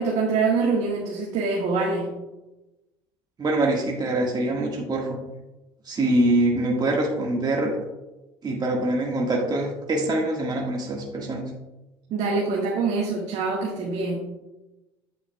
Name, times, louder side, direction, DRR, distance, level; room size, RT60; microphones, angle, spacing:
voice 1, 0.0-2.1 12.1-14.2, right 4 dB, 60° right, -2 dB, 1.6 m, -25 dB
voice 2, 3.4-5.2 5.8-7.7 8.4-11.4, right 1 dB, 35° right, -1 dB, 1.7 m, -24 dB
8.4 x 8.4 x 2.3 m, 1.0 s
supercardioid pair, 80°, 13 cm